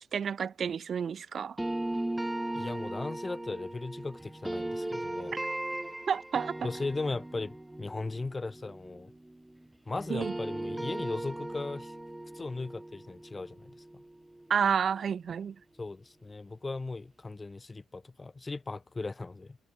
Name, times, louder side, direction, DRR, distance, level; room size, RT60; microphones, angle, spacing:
voice 1, 0.1-1.6 6.1-6.7 10.1-10.3 14.5-15.6, right 7 dB, 50° right, 0.5 m, -30 dB
sound 1, 1.6-9.7 10.0-14.9, right 1 dB, 10° right, 0.8 m, -38 dB
voice 2, 2.5-5.4 6.6-9.1 9.9-11.9 12.3-14.0 15.8-19.6, left 3 dB, 25° left, 1.7 m, -37 dB
cardioid pair, 90°, 0 cm